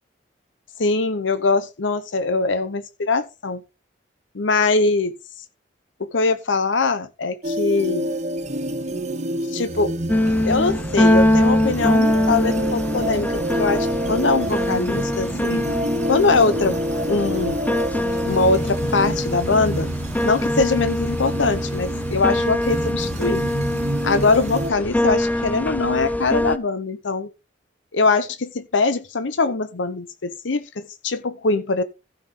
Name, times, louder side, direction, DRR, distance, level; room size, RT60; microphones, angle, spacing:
voice 1, 0.8-3.6 4.3-5.2 6.1-8.1 9.5-9.9 10.5-13.3 13.6-15.7 16.1-16.8 17.1-17.6 18.3-19.9 20.2-23.4 24.0-27.3 27.9-31.8, left 3 dB, 85° left, 0.8 m, -22 dB
sound 1, 7.4-24.7, right 1 dB, 40° right, 1.2 m, -28 dB
sound 2, 10.1-26.6, left 1 dB, 10° left, 0.5 m, -23 dB
15.0 x 5.9 x 3.8 m
head